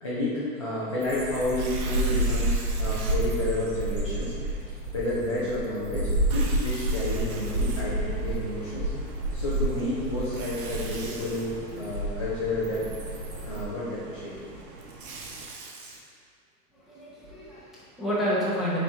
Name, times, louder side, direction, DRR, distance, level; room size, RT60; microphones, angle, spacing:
voice 1, 0.0-4.3 4.9-8.9 9.3-12.9 13.4-14.5, left 1 dB, 20° left, -10 dB, 0.4 m, -30 dB
sound 1, 1.0-13.6, right 1 dB, 25° right, 1.1 m, -30 dB
Tearing, 1.4-3.2 3.8-3.9 6.2-8.3 10.2-11.5 14.6-16.0, right 3 dB, 60° right, 1.1 m, -42 dB
sound 2, 6.3-15.5, right 2 dB, 85° right, 1.3 m, -47 dB
voice 2, 16.7-18.8, equal, ahead, -10 dB, 0.8 m, -29 dB
7.1 x 4.5 x 3.6 m, 2.2 s
hypercardioid pair, 150°, 50 cm